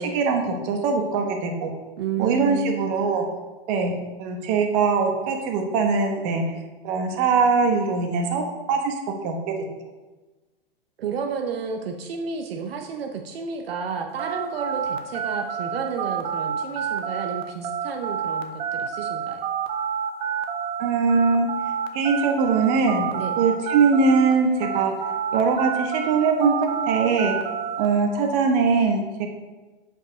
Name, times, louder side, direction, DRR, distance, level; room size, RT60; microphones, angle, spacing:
voice 1, 0.0-1.7 2.2-3.2 3.7-6.5 6.8-8.4 8.7-9.0 9.2-9.3 20.8-21.5 21.9-23.1 23.4-24.9 25.3-26.5 26.9-27.4 27.8-29.3, right 4 dB, 45° right, 3 dB, 1.1 m, -21 dB
voice 2, 2.0-2.9 11.0-19.4 23.1-23.4, right 6 dB, 80° right, 4 dB, 0.8 m, -31 dB
sound 1, 14.2-24.3 24.6-27.9, right 8 dB, 20° right, 0.5 m, -28 dB
5.2 x 4.8 x 5.0 m, 1.2 s
hypercardioid pair, 125°, 29 cm